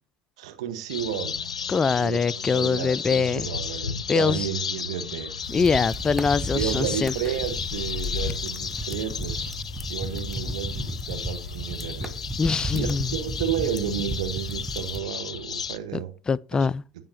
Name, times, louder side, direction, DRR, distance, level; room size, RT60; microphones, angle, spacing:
voice 1, 0.4-1.4 2.0-5.3 6.5-9.6 9.9-12.1 12.4-16.1 16.5-16.7, right 9 dB, 70° right, 1.4 m, -32 dB
sound 1, 0.9-15.8, left 6 dB, 85° left, 0.5 m, -34 dB
voice 2, 1.7-3.5 4.1-4.5 5.5-7.1 12.4-13.1 16.3-16.8, left 5 dB, 25° left, 0.3 m, -23 dB
sound 2, 5.4-15.0, equal, ahead, 0.9 m, -34 dB
sound 3, 6.5-8.3, left 7 dB, 45° left, 1.4 m, -36 dB
16.0 x 5.7 x 2.8 m
figure-of-eight pair, 70°, 3 cm